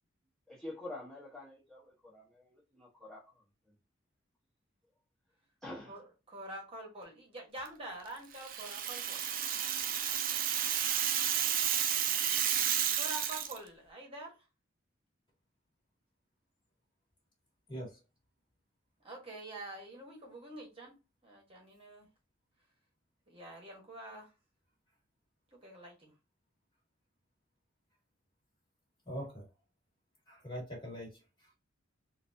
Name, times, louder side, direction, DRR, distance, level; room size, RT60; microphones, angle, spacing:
voice 1, 0.5-3.7 5.6-6.0, left 2 dB, ahead, 1.0 m, -48 dB
voice 2, 5.9-9.2 12.9-14.4 19.0-20.9 21.2-22.0 23.3-24.3 25.5-26.1, right 1 dB, 30° right, 1.2 m, -46 dB
Rattle (instrument), 8.3-13.6, right 9 dB, 45° right, 0.5 m, -31 dB
voice 3, 29.1-29.5 30.3-31.2, equal, 25° left, 1.8 m, -42 dB
3.9 x 2.6 x 2.6 m
head